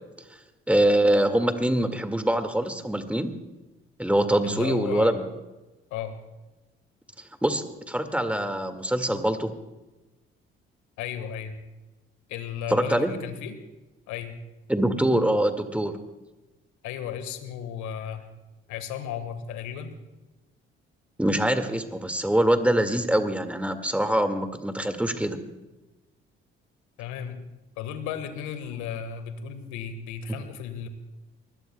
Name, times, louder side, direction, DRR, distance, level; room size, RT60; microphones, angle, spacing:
voice 1, 0.7-3.3 4.0-5.3 7.2-9.5 12.7-13.1 14.7-16.0 21.2-25.4, right 1 dB, 5° right, 7 dB, 2.0 m, -24 dB
voice 2, 4.4-5.2 5.9-6.1 11.0-11.6 12.3-13.6 14.1-14.4 16.8-18.2 18.7-19.9 27.0-27.4 27.8-30.9, left 8 dB, 70° left, 9 dB, 1.6 m, -34 dB
25.0 x 20.0 x 2.3 m, 1.1 s
hypercardioid pair, 45°, 30 cm